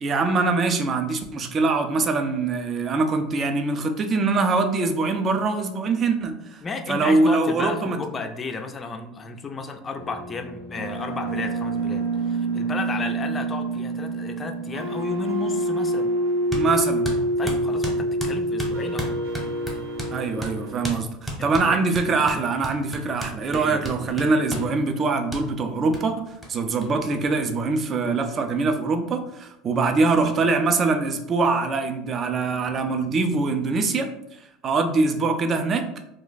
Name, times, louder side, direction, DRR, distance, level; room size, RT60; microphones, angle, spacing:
voice 1, 0.0-6.6 6.9-8.0 16.5-17.1 20.1-34.1 34.6-35.9, right 3 dB, 35° right, 6 dB, 0.4 m, -23 dB
voice 2, 6.6-16.1 17.4-19.1 21.4-21.9 23.5-23.9, left 4 dB, 25° left, 5 dB, 0.4 m, -33 dB
sound 1, 10.0-20.9, right 1 dB, 90° right, 0.7 m, -27 dB
sound 2, 16.5-16.7 17.0-20.1 20.4-20.6 20.8-21.0 21.3-24.7 25.3-25.4 25.9-26.0 26.4-26.5 26.8-26.9 27.1-27.9, equal, 5° right, 0.9 m, -32 dB
2.4 x 2.1 x 3.9 m, 0.81 s
supercardioid pair, 105°, 0 cm